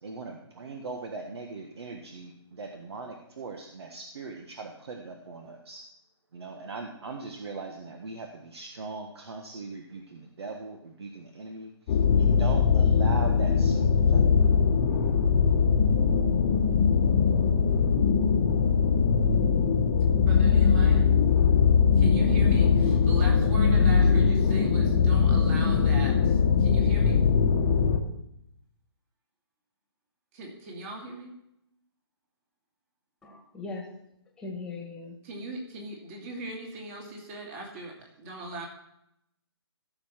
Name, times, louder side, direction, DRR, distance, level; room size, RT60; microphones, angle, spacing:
voice 1, 0.0-5.8 6.3-14.2, right 3 dB, 70° right, 3 dB, 1.5 m, -40 dB
sound 1, 11.9-28.0, left 6 dB, 30° left, 1.1 m, -21 dB
voice 2, 20.2-21.1 22.0-27.2 30.3-31.3 35.2-38.7, right 2 dB, 30° right, 0 dB, 2.8 m, -39 dB
voice 3, 33.2-33.8 34.4-35.1, left 3 dB, 5° left, -1 dB, 1.8 m, -39 dB
15.5 x 7.1 x 4.5 m, 0.79 s
hypercardioid pair, 160°, 14 cm